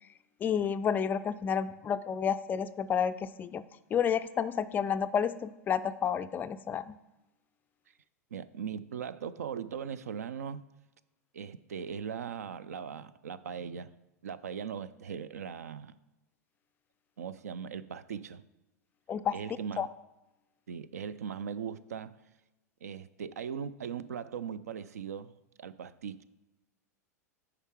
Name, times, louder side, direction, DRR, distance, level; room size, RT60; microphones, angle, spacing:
voice 1, 0.4-3.6 3.9-7.0 19.1-19.4 19.8-19.9, left 7 dB, 20° left, 12 dB, 0.3 m, -30 dB
voice 2, 8.3-10.6 11.3-13.9 14.2-15.9 17.2-18.4 19.3-19.9 20.7-22.2 22.8-25.3 25.6-26.2, right 7 dB, 70° right, 16 dB, 0.4 m, -39 dB
9.7 x 4.9 x 4.6 m, 1.0 s
figure-of-eight pair, 95°, 9 cm